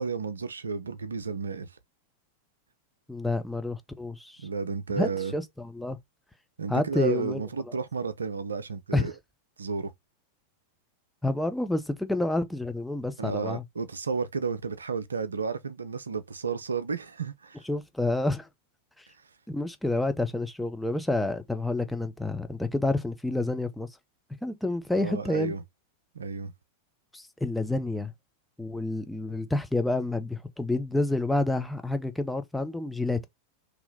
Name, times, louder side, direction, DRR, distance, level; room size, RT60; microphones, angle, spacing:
voice 1, 0.0-1.7 4.4-5.3 6.6-9.1 9.6-9.9 13.2-17.6 25.0-25.6 26.1-26.5, right 5 dB, 75° right, 0.5 m, -32 dB
voice 2, 3.1-4.5 5.0-6.0 6.7-7.4 8.9-9.1 11.2-13.6 17.6-18.5 19.0-19.1 19.5-23.9 24.4-25.5 27.1-28.1 28.6-33.2, left 2 dB, 5° left, 0.6 m, -29 dB
3.9 x 2.9 x 4.0 m
figure-of-eight pair, 90°, 0 cm